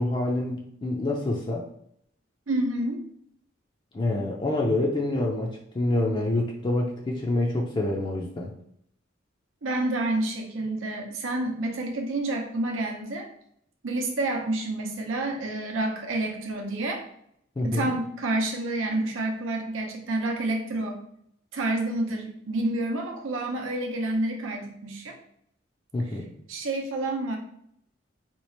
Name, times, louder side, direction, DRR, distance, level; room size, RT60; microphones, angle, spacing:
voice 1, 0.0-1.7 3.9-8.5 17.6-18.0 25.9-26.3, left 2 dB, 25° left, -1 dB, 0.4 m, -27 dB
voice 2, 2.5-3.0 9.6-13.3 13.8-17.0 17.6-21.0 21.5-25.2 26.5-27.4, right 2 dB, 80° right, 2 dB, 0.7 m, -29 dB
3.0 x 2.4 x 4.3 m, 0.71 s
head